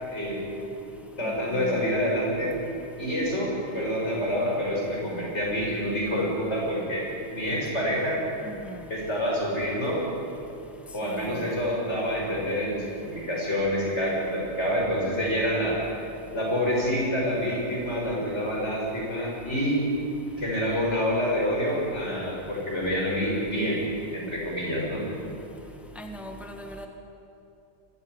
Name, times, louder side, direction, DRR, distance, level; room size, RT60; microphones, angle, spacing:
voice 1, 1.2-2.5 3.0-7.1 7.3-8.2 8.9-10.0 10.9-15.8 16.3-19.8 20.4-23.8 24.1-25.0, equal, 80° left, -4 dB, 7.3 m, -27 dB
voice 2, 26.0-26.9, equal, ahead, 3 dB, 1.6 m, -39 dB
23.0 x 15.0 x 9.9 m, 2.7 s
omnidirectional pair, 1.2 m